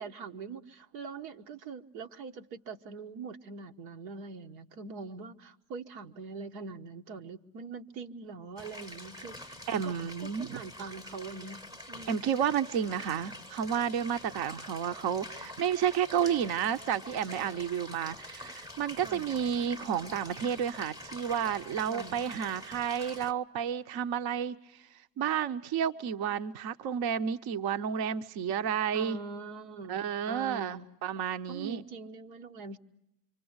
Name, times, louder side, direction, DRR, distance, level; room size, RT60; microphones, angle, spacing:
voice 1, 0.0-9.6 9.8-9.9 10.2-11.6 11.9-12.2 19.0-19.3 21.9-22.1 28.9-30.9 31.5-32.8, right 4 dB, 80° right, 5 dB, 1.3 m, -43 dB
sound 1, 8.6-23.3, left 1 dB, 5° right, 0.9 m, -46 dB
voice 2, 9.7-10.6 12.1-24.6 25.2-29.2 29.9-31.8, right 8 dB, 50° right, 9 dB, 0.9 m, -31 dB
26.0 x 25.0 x 8.0 m, 0.84 s
hypercardioid pair, 80°, 49 cm